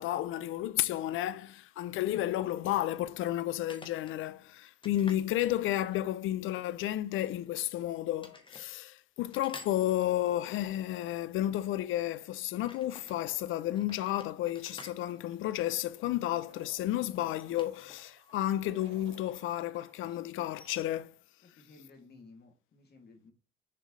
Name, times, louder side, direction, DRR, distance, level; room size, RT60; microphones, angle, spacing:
voice 1, 0.0-21.1, left 13 dB, 85° left, 0.5 m, -32 dB
sound 1, 1.4-1.5 3.6-4.2 4.8-6.2 7.1-7.8 8.2-8.7 9.3-10.4 12.5-13.2 13.7-16.1 17.1-18.4 18.7-18.8 20.4-20.8, left 3 dB, 25° left, 1.6 m, -52 dB
sound 2, 13.2-20.2, right 5 dB, 70° right, 2.6 m, -62 dB
voice 2, 21.4-23.3, left 3 dB, 55° left, 2.4 m, -56 dB
6.7 x 5.1 x 3.1 m
cardioid pair, 90°, 20 cm